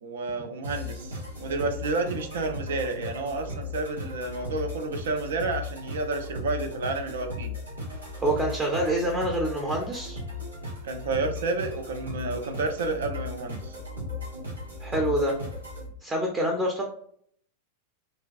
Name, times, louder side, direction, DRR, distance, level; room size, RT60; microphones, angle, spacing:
voice 1, 0.0-7.5 10.8-13.8, right 3 dB, 65° right, 6 dB, 0.5 m, -30 dB
sound 1, 0.6-15.9, left 2 dB, 85° right, 1.1 m, -37 dB
voice 2, 8.2-10.2 14.8-15.3 16.0-16.8, right 1 dB, 15° right, 0 dB, 0.6 m, -26 dB
3.1 x 2.2 x 2.5 m, 0.64 s
figure-of-eight pair, 90°, 0 cm